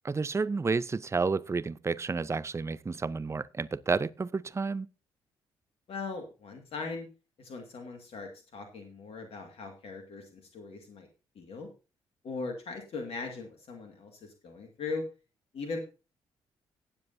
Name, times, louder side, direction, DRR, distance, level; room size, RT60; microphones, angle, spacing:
voice 1, 0.0-4.9, right 4 dB, 25° right, 0.6 m, -31 dB
voice 2, 5.9-7.1 7.4-11.1 11.4-11.7 12.2-15.0 15.5-15.8, left 4 dB, 55° left, 2.1 m, -39 dB
18.0 x 7.6 x 2.7 m
figure-of-eight pair, 40°, 12 cm